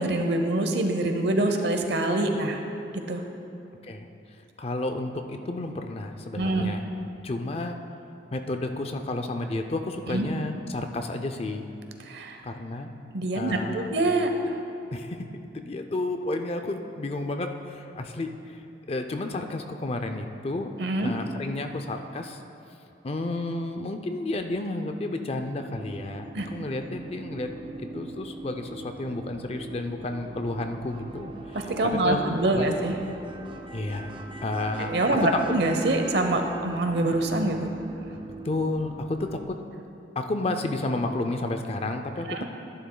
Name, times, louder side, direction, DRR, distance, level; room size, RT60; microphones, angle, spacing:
voice 1, 0.0-2.6 2.9-3.2 6.4-6.7 10.1-10.3 12.0-12.4 13.1-14.3 20.8-21.1 26.3-26.5 31.5-33.0 34.8-37.7 42.3-42.4, right 2 dB, 70° right, 5 dB, 0.8 m, -25 dB
voice 2, 4.6-6.8 7.2-7.7 8.3-11.6 12.4-12.9 13.3-13.9 14.9-15.2 15.5-18.6 18.9-20.7 21.0-22.4 23.0-27.5 27.8-32.2 32.6-32.8 33.7-34.1 34.4-35.2 38.4-39.6 40.2-42.3, left 2 dB, 35° left, 6 dB, 0.5 m, -31 dB
sound 1, 25.7-39.4, right 2 dB, 30° right, 0.5 m, -41 dB
12.5 x 11.0 x 2.3 m, 2.7 s
head